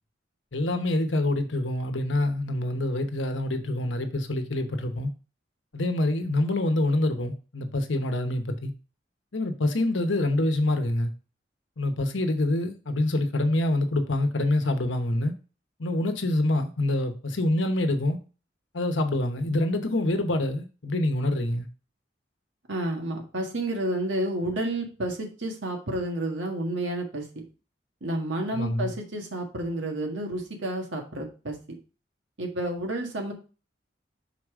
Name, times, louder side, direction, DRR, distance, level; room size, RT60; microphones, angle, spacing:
voice 1, 0.5-5.1 5.7-8.7 9.3-11.1 11.8-15.3 15.8-18.2 18.7-21.7 28.5-28.9, left 1 dB, 90° left, 1.0 m, -26 dB
voice 2, 22.7-27.4 28.0-31.5 32.4-33.3, right 1 dB, 90° right, 1.6 m, -30 dB
5.7 x 4.9 x 3.6 m
head